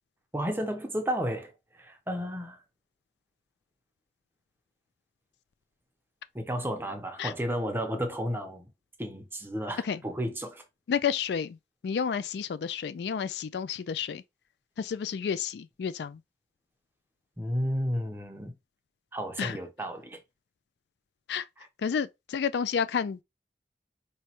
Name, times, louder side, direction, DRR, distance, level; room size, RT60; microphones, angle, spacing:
voice 1, 0.3-2.6 6.3-8.7 9.0-10.6 17.4-18.5 19.1-20.2 21.6-21.7, equal, 10° right, 0.8 m, -32 dB
voice 2, 10.9-11.6 11.8-14.2 14.8-16.2 19.4-19.6 21.3-21.4 21.8-23.2, left 7 dB, 75° left, 0.3 m, -30 dB
4.7 x 3.0 x 2.9 m
head